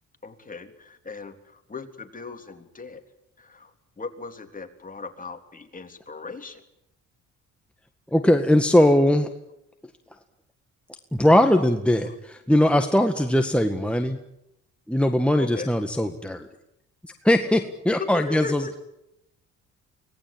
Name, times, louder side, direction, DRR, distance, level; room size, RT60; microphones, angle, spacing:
voice 1, 0.2-3.0 3.4-3.7 4.0-6.6 12.0-12.2 15.4-15.7 18.0-18.8, left 4 dB, 25° left, 6 dB, 3.4 m, -38 dB
voice 2, 8.1-9.3 11.1-14.2 14.9-16.5 17.2-18.7, left 1 dB, 5° left, 5 dB, 1.8 m, -20 dB
25.0 x 19.0 x 9.0 m, 0.83 s
cardioid pair, 90°, 30 cm